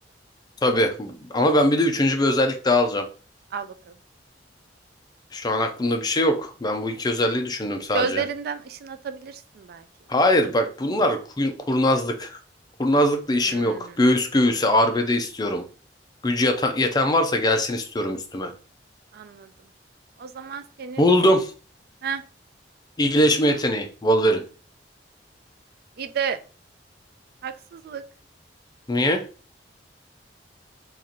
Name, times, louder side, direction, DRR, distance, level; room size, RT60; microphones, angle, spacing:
voice 1, 0.6-3.0 5.3-8.2 10.1-12.4 12.8-15.6 16.2-18.5 21.0-21.5 23.0-24.4 28.9-29.2, left 1 dB, 25° left, 0.5 m, -21 dB
voice 2, 3.5-3.9 7.9-9.9 13.5-14.0 19.1-19.5 20.2-21.3 22.0-22.2 26.0-26.4 27.4-28.0, right 6 dB, 60° right, 0.4 m, -32 dB
2.9 x 2.5 x 3.9 m
head